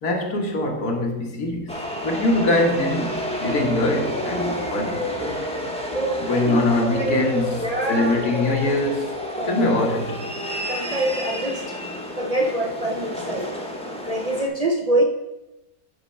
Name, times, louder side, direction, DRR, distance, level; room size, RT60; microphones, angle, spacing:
voice 1, 0.0-1.7 2.0-5.4 6.2-9.1 9.5-10.2, left 2 dB, 80° left, 1 dB, 1.8 m, -23 dB
sound 1, 1.7-14.5, left 1 dB, 5° left, 0.7 m, -29 dB
voice 2, 5.9-6.6 7.0-7.2 7.6-8.7 9.4-9.7 10.7-11.6 12.2-13.5 14.0-15.0, right 1 dB, 55° right, 1 dB, 0.4 m, -25 dB
7.9 x 4.1 x 5.4 m, 0.97 s
omnidirectional pair, 1.6 m